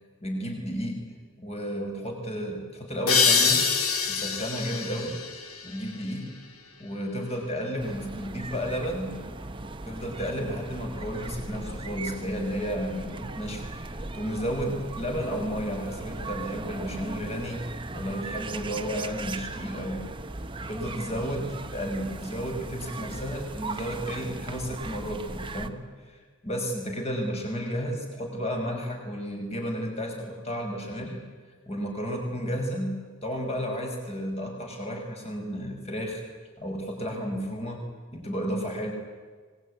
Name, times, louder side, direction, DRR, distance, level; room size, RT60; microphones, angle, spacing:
voice 1, 0.2-1.0 1.4-3.7 4.1-5.2 5.6-6.3 6.8-9.2 9.9-13.7 14.1-17.6 17.9-20.0 20.7-25.8 26.0-26.2 26.4-31.2 31.7-36.2 36.6-37.8 38.1-38.9, equal, 30° left, 2 dB, 5.6 m, -32 dB
sound 1, 3.1-6.5, left 5 dB, 80° left, 3.1 m, -25 dB
sound 2, 7.8-25.7, right 2 dB, 25° right, 1.1 m, -38 dB
25.0 x 21.0 x 9.7 m, 1.5 s
head